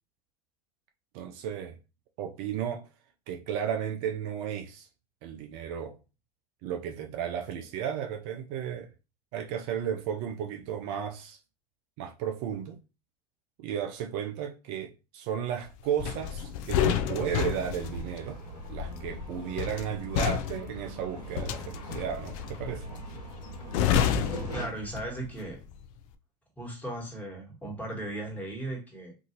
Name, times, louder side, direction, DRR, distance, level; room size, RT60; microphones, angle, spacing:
voice 1, 1.1-1.8 2.2-2.8 3.3-4.9 5.2-5.9 6.6-8.9 9.3-11.4 12.0-12.8 13.6-18.4 18.7-22.9, right 9 dB, 55° right, 0.5 m, -34 dB
sound 1, 16.0-25.3 25.6-25.9, left 9 dB, 55° left, 0.4 m, -30 dB
sound 2, 17.8-24.7, right 2 dB, 90° left, 1.2 m, -42 dB
voice 2, 24.5-25.6 26.6-29.1, right 1 dB, 5° left, 1.4 m, -37 dB
2.7 x 2.6 x 2.8 m
hypercardioid pair, 85°, 21 cm